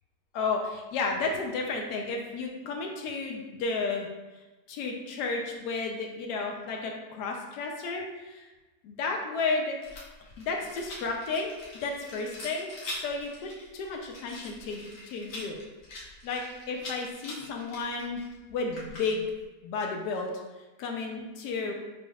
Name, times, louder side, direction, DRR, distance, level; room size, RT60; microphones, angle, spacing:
voice 1, 0.3-4.1 4.7-8.4 8.8-9.8 10.4-15.6 16.2-18.2 18.5-19.2 19.6-20.3 20.8-21.7, left 4 dB, 90° left, 1 dB, 1.2 m, -32 dB
Rattle, 9.8-19.4, left 1 dB, 70° left, 1.5 m, -44 dB
5.2 x 3.3 x 2.3 m, 1.1 s
omnidirectional pair, 1.7 m